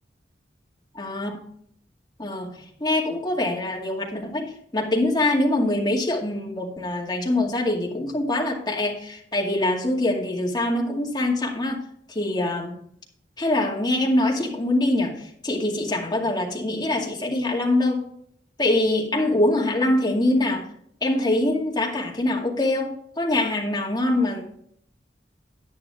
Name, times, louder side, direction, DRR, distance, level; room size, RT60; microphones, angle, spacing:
voice 1, 1.0-1.4 2.2-4.4 4.7-11.8 12.1-12.8 13.4-15.2 15.4-18.1 18.6-20.7 21.0-24.4, left 1 dB, 20° left, -1 dB, 2.3 m, -24 dB
10.5 x 10.0 x 3.7 m, 0.65 s
head